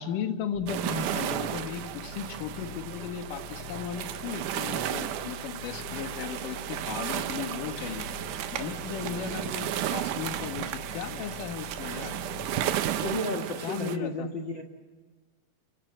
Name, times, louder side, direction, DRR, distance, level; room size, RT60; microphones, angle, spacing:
voice 1, 0.0-8.1 8.5-12.1 13.6-14.3, left 8 dB, 60° left, 7 dB, 2.8 m, -36 dB
sound 1, 0.5-13.2, left 6 dB, 85° left, 1.5 m, -45 dB
sound 2, 0.7-14.0, right 11 dB, 75° right, 2.0 m, -34 dB
sound 3, 7.3-13.0, right 11 dB, 90° right, 3.4 m, -40 dB
voice 2, 13.0-14.6, left 1 dB, 45° left, 5 dB, 1.6 m, -32 dB
30.0 x 22.5 x 8.0 m, 1.4 s
omnidirectional pair, 4.7 m